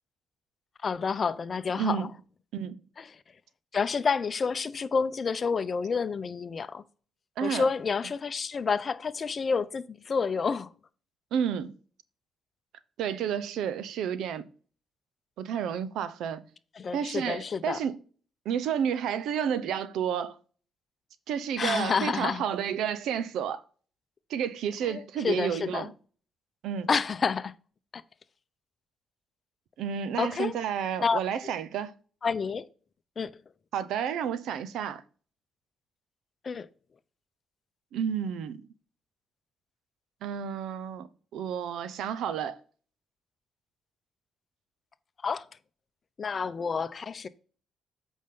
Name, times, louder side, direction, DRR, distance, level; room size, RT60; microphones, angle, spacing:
voice 1, 0.8-2.1 3.0-3.1 3.7-6.8 7.4-10.7 16.8-17.8 21.6-22.4 24.9-25.9 26.9-27.5 27.9-28.0 30.2-30.6 31.0-31.2 32.2-32.6 33.2-33.3 36.4-36.7 45.2-45.4 46.2-47.3, left 5 dB, 40° left, 0.7 m, -29 dB
voice 2, 1.8-2.1 2.5-2.8 7.4-7.7 11.3-11.7 13.0-14.5 15.4-16.4 16.9-18.0 18.4-20.4 21.3-23.6 24.3-25.9 26.6-26.9 29.8-31.9 33.7-35.0 37.9-38.6 40.2-42.6, right 8 dB, 80° right, 0.7 m, -31 dB
8.6 x 5.4 x 3.8 m
cardioid pair, 90°, 0 cm